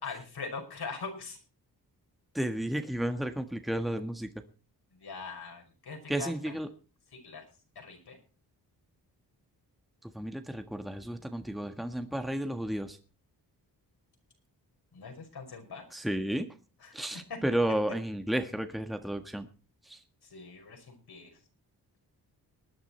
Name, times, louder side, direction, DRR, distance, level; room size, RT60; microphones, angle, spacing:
voice 1, 0.0-1.4 5.0-6.5 7.1-7.4 7.8-8.2 14.9-15.9 16.8-17.4 20.3-21.3, left 4 dB, 70° left, 4 dB, 5.6 m, -42 dB
voice 2, 2.3-4.3 6.1-6.7 10.1-13.0 15.9-16.5 16.9-19.5 19.9-20.0, right 1 dB, ahead, 7 dB, 1.6 m, -32 dB
19.5 x 10.0 x 4.4 m, 0.36 s
cardioid pair, 65°, 40 cm